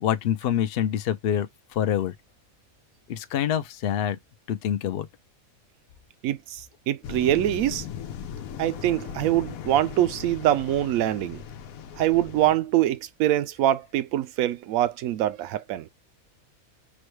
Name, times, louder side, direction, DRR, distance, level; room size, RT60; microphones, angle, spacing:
voice 1, 0.0-2.1 3.1-4.2 4.5-5.1, left 10 dB, 60° left, 0.6 m, -26 dB
voice 2, 6.2-7.9 8.6-11.4 12.0-15.9, right 13 dB, 80° right, 1.0 m, -24 dB
sound 1, 7.0-12.6, left 8 dB, 90° left, 1.1 m, -38 dB
6.1 x 2.2 x 3.1 m
omnidirectional pair, 1.5 m